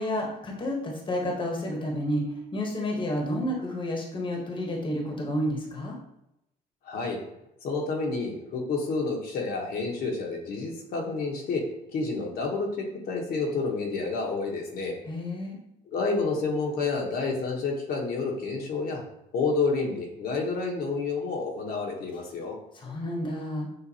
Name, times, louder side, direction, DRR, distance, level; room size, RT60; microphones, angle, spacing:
voice 1, 0.0-6.0 15.1-15.6 22.7-23.7, left 1 dB, 30° left, 0 dB, 1.1 m, -30 dB
voice 2, 6.8-7.2 7.6-11.6 11.9-15.0 15.9-19.0 19.3-22.6, left 3 dB, 65° left, 0 dB, 1.1 m, -29 dB
6.8 x 2.6 x 2.8 m, 0.83 s
cardioid pair, 110°, 17 cm